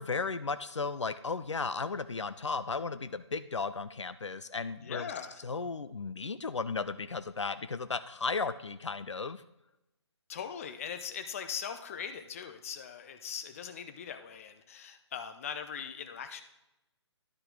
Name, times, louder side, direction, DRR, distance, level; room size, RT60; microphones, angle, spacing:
voice 1, 0.0-5.1 5.4-9.4, left 4 dB, 75° left, 13 dB, 0.4 m, -35 dB
voice 2, 4.8-5.4 10.3-16.4, left 8 dB, 30° left, 8 dB, 0.6 m, -40 dB
12.0 x 4.4 x 3.7 m, 0.92 s
figure-of-eight pair, 140°, 15 cm